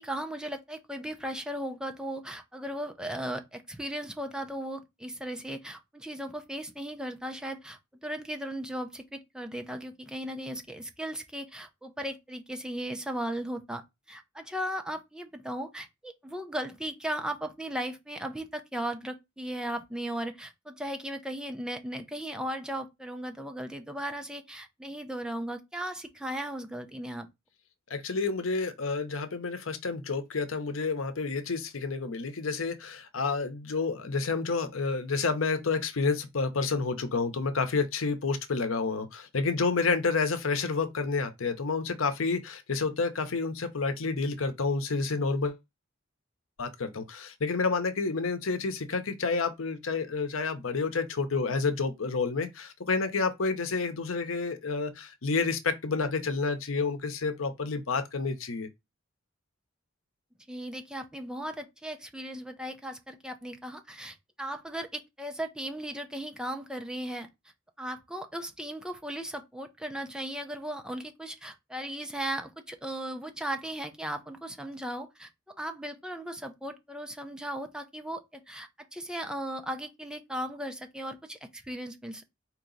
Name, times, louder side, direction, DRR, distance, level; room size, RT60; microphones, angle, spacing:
voice 1, 0.0-13.8 14.1-27.3 60.5-67.3 67.8-82.2, right 1 dB, 5° right, 0.7 m, -37 dB
voice 2, 27.9-45.6 46.6-58.7, left 4 dB, 85° left, 0.8 m, -29 dB
4.5 x 2.9 x 3.9 m
head